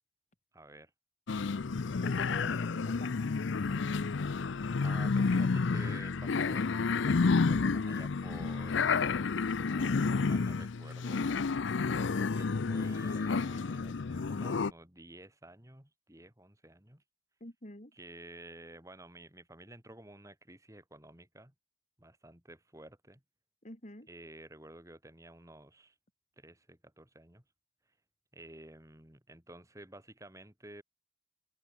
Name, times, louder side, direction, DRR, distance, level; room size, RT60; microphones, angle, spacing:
voice 1, 0.5-0.9 4.8-8.9 9.6-11.4 12.1-17.0 17.9-21.5 22.0-23.2 24.1-25.9 26.4-27.4 28.3-30.8, right 1 dB, 15° right, 3.7 m, -52 dB
sound 1, 1.3-14.7, left 4 dB, 65° left, 0.5 m, -30 dB
voice 2, 2.0-3.2 17.4-17.9 23.6-24.1, left 1 dB, 35° left, 3.4 m, -46 dB
head